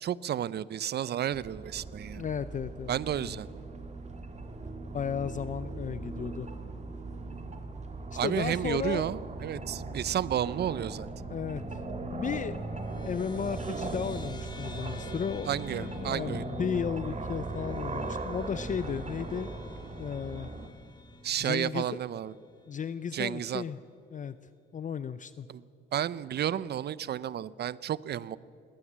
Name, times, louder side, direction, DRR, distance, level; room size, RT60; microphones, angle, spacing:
voice 1, 0.0-2.2 2.9-3.5 8.2-11.1 15.5-16.4 21.2-22.3 23.1-23.6 25.5-25.6 25.9-28.4, right 10 dB, 55° right, 20 dB, 0.6 m, -32 dB
sound 1, 1.3-20.7, right 3 dB, 35° right, 2.0 m, -39 dB
voice 2, 2.2-2.9 3.2-3.4 4.9-6.5 8.1-9.1 11.3-11.8 12.1-12.6 13.0-19.5 20.0-20.5 21.4-21.9 22.7-23.8 24.1-24.4 24.7-25.5, left 7 dB, 40° left, 14 dB, 0.6 m, -34 dB
sound 2, 11.2-22.0, left 1 dB, 20° left, 2.0 m, -43 dB
20.5 x 18.0 x 7.5 m, 2.5 s
cardioid pair, 90°, 20 cm